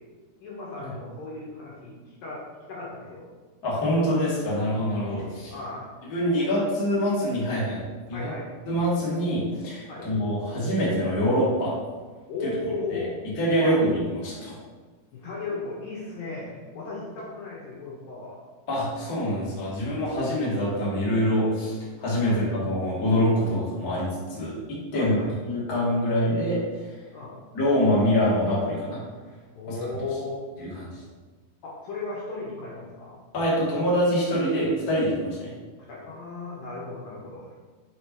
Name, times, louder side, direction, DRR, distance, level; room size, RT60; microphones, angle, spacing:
voice 1, 0.4-3.2 5.5-5.9 6.4-6.5 8.1-8.5 9.9-10.1 12.3-13.2 13.6-13.8 15.1-18.4 22.2-22.4 24.9-25.3 27.1-27.4 29.5-30.4 31.6-33.2 35.9-37.5, left 3 dB, 70° left, -5 dB, 2.5 m, -35 dB
voice 2, 3.6-5.5 6.1-7.8 8.1-8.3 8.6-11.7 13.4-14.5 18.7-25.2 25.4-26.6 27.5-29.0 29.7-29.8 30.6-30.7 33.3-35.5, equal, 35° left, -7 dB, 1.6 m, -25 dB
5.6 x 5.1 x 4.5 m, 1.4 s
omnidirectional pair, 4.7 m